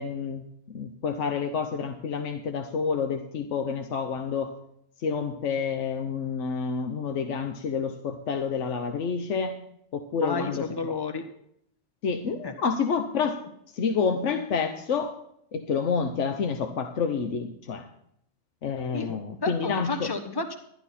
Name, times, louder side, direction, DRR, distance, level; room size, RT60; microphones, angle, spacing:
voice 1, 0.0-4.5 5.0-9.6 9.9-10.7 12.0-13.4 13.7-15.1 15.5-17.9 18.6-20.1, left 5 dB, 80° left, 6 dB, 1.2 m, -28 dB
voice 2, 10.2-11.2 12.4-12.5 18.9-20.5, left 4 dB, 20° left, 4 dB, 1.2 m, -32 dB
12.5 x 11.0 x 4.2 m, 0.73 s
omnidirectional pair, 1.2 m